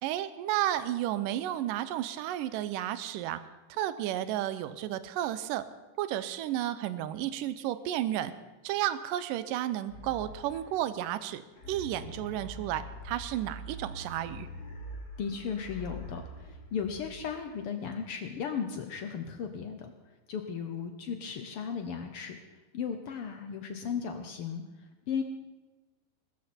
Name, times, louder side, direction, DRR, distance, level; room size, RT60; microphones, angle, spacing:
voice 1, 0.0-3.4 3.7-5.7 6.0-8.3 8.6-11.4 11.7-14.5, right 12 dB, 80° right, 13 dB, 2.3 m, -32 dB
sound 1, 9.9-11.0 11.5-17.5, equal, 35° left, 5.9 m, -44 dB
voice 2, 15.2-19.9 20.3-22.4 22.7-25.2, left 6 dB, 90° left, 6 dB, 1.2 m, -36 dB
21.0 x 13.5 x 4.4 m, 1.2 s
omnidirectional pair, 3.9 m